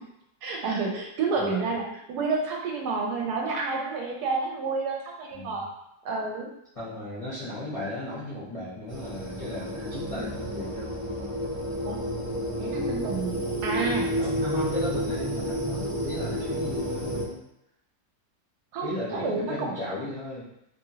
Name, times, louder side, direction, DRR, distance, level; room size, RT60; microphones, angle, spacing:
voice 1, 0.4-5.7 6.0-6.5 11.9-12.0 12.6-14.1 18.7-19.7, right 4 dB, 75° right, 0 dB, 1.1 m, -29 dB
voice 2, 1.4-1.7 5.3-5.6 6.7-10.9 11.2-11.3 14.2-17.4 18.8-20.4, left 1 dB, 40° left, -11 dB, 0.5 m, -35 dB
sound 1, 8.9-17.2, equal, 45° right, 0.7 m, -30 dB
2.8 x 2.7 x 2.7 m, 0.82 s
omnidirectional pair, 1.9 m